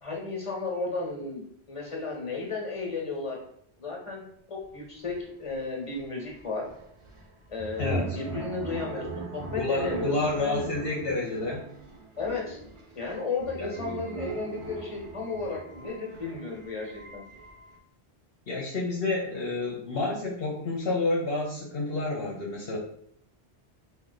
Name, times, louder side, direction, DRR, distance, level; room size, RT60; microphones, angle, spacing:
voice 1, 0.0-3.4 3.8-4.2 4.5-6.6 7.5-9.1 9.3-10.6 12.2-12.6 12.9-17.2, left 4 dB, 30° left, -1 dB, 1.3 m, -34 dB
sound 1, 4.7-4.8 5.0-17.8, right 3 dB, 35° right, 0.7 m, -39 dB
voice 2, 7.8-8.2 9.6-11.7 13.6-13.7 18.5-22.8, left 2 dB, 65° left, -2 dB, 1.0 m, -29 dB
4.5 x 2.6 x 3.9 m, 0.67 s
omnidirectional pair, 1.1 m